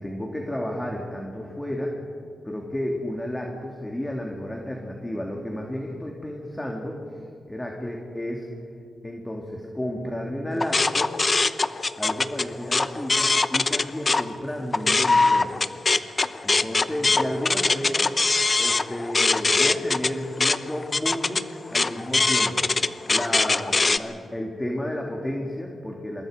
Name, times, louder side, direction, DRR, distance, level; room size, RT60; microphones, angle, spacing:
voice 1, 0.0-2.0 2.4-7.2 7.5-8.5 9.0-11.2 12.0-15.6 16.4-18.1 18.6-22.7 23.1-26.3, left 1 dB, 10° left, 0 dB, 2.9 m, -32 dB
sound 1, 10.6-14.2 14.6-24.0, left 3 dB, 35° left, 0.8 m, -22 dB
27.0 x 21.0 x 5.2 m, 2.3 s
cardioid pair, 80°, 0 cm